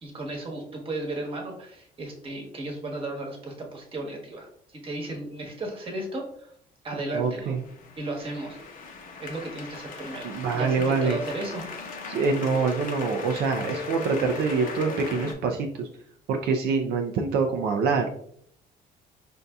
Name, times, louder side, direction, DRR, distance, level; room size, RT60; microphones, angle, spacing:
voice 1, 0.0-6.5 6.8-7.6 8.0-8.6 9.2-11.7, right 2 dB, 35° right, 0 dB, 1.2 m, -35 dB
voice 2, 7.1-7.6 10.2-11.2 12.1-15.9 16.3-18.1, right 4 dB, 70° right, 3 dB, 0.5 m, -25 dB
sound 1, 7.2-15.3, left 4 dB, 55° left, 0.8 m, -38 dB
5.3 x 2.6 x 2.3 m, 0.65 s
cardioid pair, 110°, 17 cm